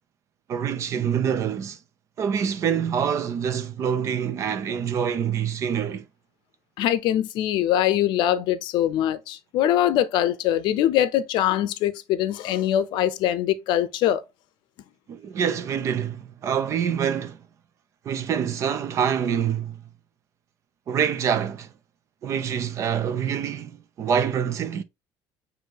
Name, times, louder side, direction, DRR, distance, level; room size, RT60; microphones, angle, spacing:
voice 1, 0.5-1.8 2.2-6.1 15.1-17.4 18.0-19.8 20.9-21.7 22.2-24.8, right 8 dB, 35° right, 0.5 m, -26 dB
voice 2, 6.8-14.2, left 11 dB, 70° left, 0.6 m, -23 dB
6.3 x 2.7 x 2.9 m
cardioid pair, 175°, 8 cm